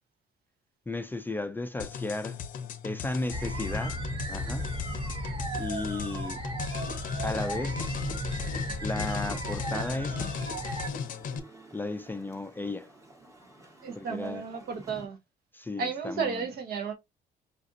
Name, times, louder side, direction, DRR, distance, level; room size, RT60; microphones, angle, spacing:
voice 1, 0.9-2.4 2.8-4.7 5.6-6.4 7.2-8.0 8.8-10.3 11.7-12.9 14.0-14.4 15.5-16.5, left 2 dB, 10° left, 0.3 m, -35 dB
sound 1, 1.8-11.4, left 6 dB, 50° left, 0.6 m, -37 dB
sound 2, 3.3-10.9, right 1 dB, 35° right, 1.0 m, -35 dB
sound 3, 9.9-15.1, right 2 dB, 20° right, 1.2 m, -52 dB
voice 2, 13.8-15.2 15.8-17.0, right 5 dB, 65° right, 1.0 m, -33 dB
5.0 x 2.5 x 2.5 m
cardioid pair, 110°, 17 cm